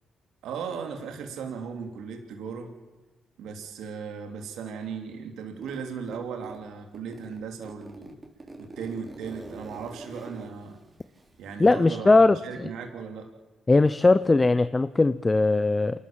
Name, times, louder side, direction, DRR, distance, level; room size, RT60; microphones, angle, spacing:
voice 1, 0.4-2.7 3.4-8.1 8.6-10.8 11.4-13.3, right 6 dB, 80° right, 3 dB, 3.1 m, -37 dB
Zipper (clothing), 5.6-6.6 6.9-11.6, right 2 dB, 30° right, 4.6 m, -44 dB
voice 2, 11.6-12.4 13.7-16.0, left 3 dB, 25° left, 13 dB, 0.8 m, -19 dB
28.0 x 13.0 x 7.5 m, 1.2 s
supercardioid pair, 60°, 0 cm